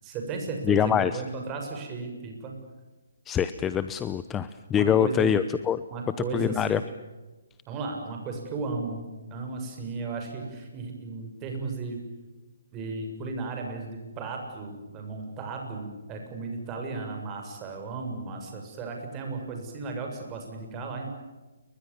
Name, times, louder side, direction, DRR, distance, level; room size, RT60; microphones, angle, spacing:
voice 1, 0.0-2.5 4.7-5.3 5.9-6.8 7.7-9.0 9.3-12.0 12.7-21.1, right 3 dB, 20° right, 3 dB, 6.9 m, -35 dB
voice 2, 0.6-1.2 3.3-5.8 6.3-6.8, left 8 dB, 10° left, 13 dB, 0.8 m, -24 dB
29.5 x 23.5 x 7.2 m, 1.2 s
hypercardioid pair, 160°, 0 cm